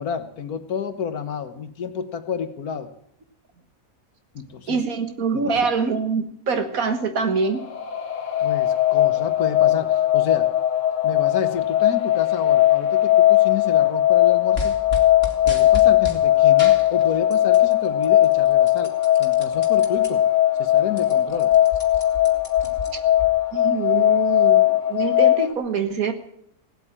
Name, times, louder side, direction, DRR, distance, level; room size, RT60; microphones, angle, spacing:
voice 1, 0.0-2.9 4.4-4.8 5.5-5.7 8.4-10.5 11.0-14.8 15.4-20.3 20.6-21.6, left 7 dB, 75° left, 9 dB, 1.7 m, -30 dB
voice 2, 4.7-7.6 22.9-23.0 23.5-26.1, right 5 dB, 65° right, 7 dB, 1.9 m, -25 dB
sound 1, 7.4-25.5, left 13 dB, 60° left, 1.3 m, -19 dB
sound 2, 14.5-16.2 16.6-17.7 18.0-20.1 20.5-20.6 20.8-23.3, left 3 dB, 40° left, 2.3 m, -33 dB
17.5 x 8.2 x 8.9 m, 0.70 s
omnidirectional pair, 1.6 m